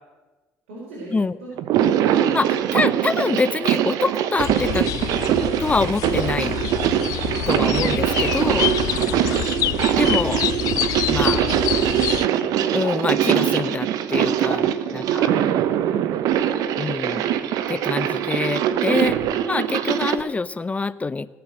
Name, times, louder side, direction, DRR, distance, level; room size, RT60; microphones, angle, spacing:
voice 1, 0.7-1.1 1.4-1.5 1.8-2.7 7.1-7.7 14.6-15.7, right 2 dB, 85° right, -6 dB, 4.6 m, -41 dB
sound 1, 1.6-20.2, right 10 dB, 65° right, 0.9 m, -22 dB
voice 2, 2.0-4.9 5.6-6.6 7.5-8.8 10.0-10.5 11.1-11.5 12.7-15.3 16.8-17.3 17.7-19.2 19.5-21.3, left 3 dB, 20° left, 17 dB, 0.6 m, -25 dB
sound 2, 4.4-12.3, left 15 dB, 60° left, 0.4 m, -27 dB
18.0 x 7.0 x 7.7 m, 1.2 s
hypercardioid pair, 65°, 7 cm